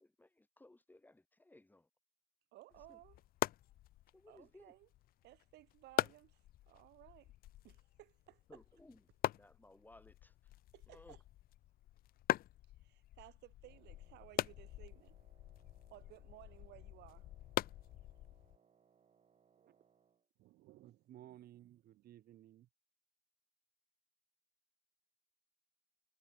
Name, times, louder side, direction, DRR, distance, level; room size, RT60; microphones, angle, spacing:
voice 1, 0.0-1.9 2.9-3.0 4.1-4.7 8.5-9.0 9.3-10.5 10.9-11.2, left 2 dB, 10° left, 2.4 m, -61 dB
voice 2, 2.5-3.2 4.3-4.9 5.2-7.3 7.6-8.6 10.7-11.2 12.6-15.2 15.9-17.3 18.3-18.4 20.4-22.1, right 17 dB, 80° right, 7.6 m, -60 dB
sound 1, 2.7-18.6, left 15 dB, 60° left, 0.5 m, -43 dB
Wind instrument woodwind instrument, 13.6-20.3, right 7 dB, 40° right, 5.2 m, -73 dB
voice 3, 20.8-22.7, right 12 dB, 65° right, 3.9 m, -58 dB
cardioid pair, 110°, 17 cm